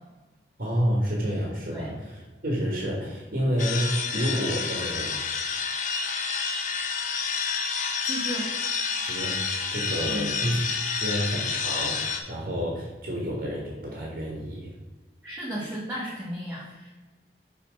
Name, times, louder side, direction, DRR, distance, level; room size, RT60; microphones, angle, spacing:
voice 1, 0.6-5.1 8.9-10.6 11.0-14.7, equal, 55° right, -2 dB, 1.6 m, -29 dB
sound 1, 3.6-12.2, left 5 dB, 45° left, 0.6 m, -29 dB
voice 2, 8.0-8.5 10.1-10.4 15.2-17.0, right 1 dB, 10° right, -7 dB, 1.2 m, -34 dB
5.9 x 4.1 x 5.2 m, 1.2 s
head